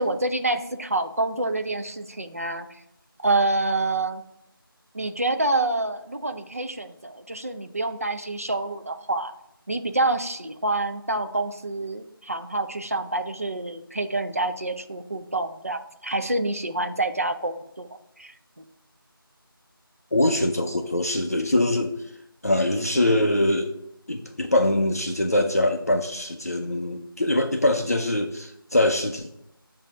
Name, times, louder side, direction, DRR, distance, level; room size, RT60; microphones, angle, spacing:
voice 1, 0.0-2.8 3.2-4.2 4.9-9.3 9.7-17.9 18.2-18.4, right 2 dB, 40° right, 7 dB, 0.4 m, -27 dB
voice 2, 20.1-22.2 22.4-23.7 24.1-29.3, left 1 dB, 40° left, 4 dB, 0.4 m, -23 dB
7.0 x 2.7 x 5.4 m, 0.81 s
figure-of-eight pair, 170°, 12 cm